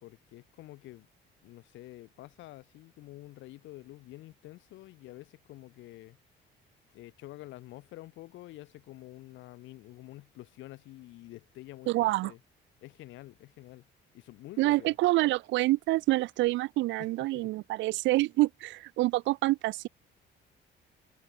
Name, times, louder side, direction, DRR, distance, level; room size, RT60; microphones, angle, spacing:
voice 1, 0.0-1.1 1.4-6.2 6.9-12.4 12.8-13.9 14.1-14.9 17.0-17.1 17.3-17.5, left 17 dB, 90° left, 3.0 m, -48 dB
voice 2, 11.9-12.3 14.6-19.9, right 18 dB, 80° right, 0.5 m, -27 dB
cardioid pair, 150°, 19 cm